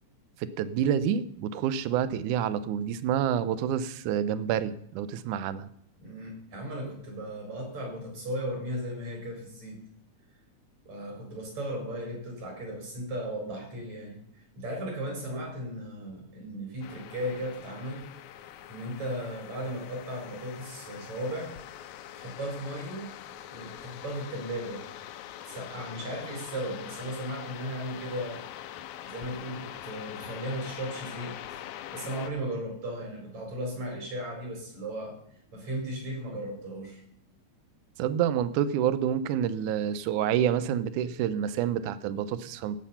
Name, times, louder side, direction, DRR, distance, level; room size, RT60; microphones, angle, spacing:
voice 1, 0.4-5.7 38.0-42.8, right 9 dB, 85° right, 14 dB, 2.2 m, -28 dB
voice 2, 6.0-9.8 10.9-14.2 14.6-18.0 18.7-21.6 22.2-23.1 23.5-24.8 25.5-28.4 29.0-31.6 31.9-35.1 35.5-37.0, right 1 dB, 60° right, -1 dB, 6.0 m, -36 dB
sound 1, 16.8-32.3, left 11 dB, 75° left, 1.9 m, -43 dB
16.0 x 7.3 x 5.6 m, 0.70 s
omnidirectional pair, 3.5 m